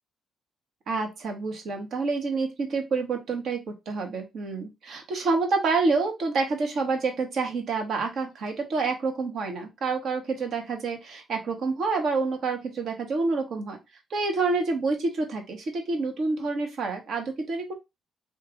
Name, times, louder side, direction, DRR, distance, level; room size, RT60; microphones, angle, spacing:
voice 1, 0.9-3.6 3.9-13.8 14.1-17.7, right 3 dB, 65° right, 4 dB, 1.3 m, -28 dB
3.2 x 2.7 x 3.8 m, 0.23 s
supercardioid pair, 70°, 0 cm